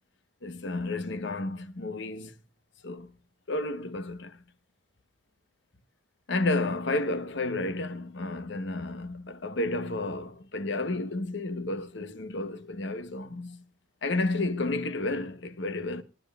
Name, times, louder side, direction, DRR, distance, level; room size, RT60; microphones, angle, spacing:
voice 1, 0.4-2.3 2.8-3.1 3.5-4.4 6.3-13.6 14.0-16.0, left 2 dB, 65° left, 1.1 m, -31 dB
24.5 x 10.5 x 2.4 m
head